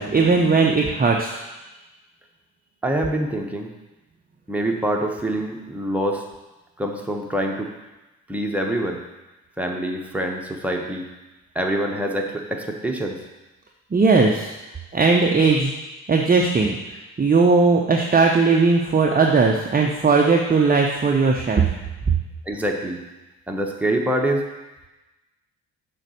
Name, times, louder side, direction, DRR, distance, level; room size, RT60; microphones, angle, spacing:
voice 1, 0.0-1.4 13.9-14.5 14.9-15.7 16.1-16.8 17.2-21.6, right 4 dB, 20° right, 1 dB, 0.8 m, -18 dB
voice 2, 2.8-3.7 4.5-6.2 6.8-7.7 8.3-9.0 9.6-11.1 11.5-13.2 22.5-23.0 23.5-24.5, right 1 dB, 5° right, 1 dB, 1.2 m, -25 dB
6.5 x 4.1 x 6.4 m, 1.1 s
figure-of-eight pair, 40°, 44 cm